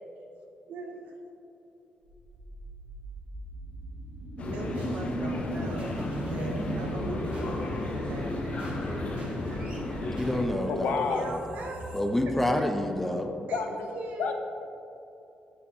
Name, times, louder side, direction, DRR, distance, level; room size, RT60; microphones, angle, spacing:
voice 1, 0.7-1.1 4.4-9.1 11.1-12.0 12.3-12.4 13.5-14.3, right 2 dB, 80° right, 1 dB, 1.1 m, -41 dB
sound 1, 2.0-13.1, right 1 dB, 55° right, 1.5 m, -39 dB
sound 2, 4.4-10.5, left 2 dB, 55° left, 0.9 m, -33 dB
voice 2, 10.2-11.3 11.9-13.3, left 1 dB, 10° left, 5 dB, 0.5 m, -28 dB
voice 3, 10.7-11.3 13.5-13.7 14.2-14.3, left 5 dB, 85° left, 4 dB, 0.7 m, -28 dB
6.9 x 6.8 x 3.7 m, 2.9 s
cardioid pair, 105°, 3 cm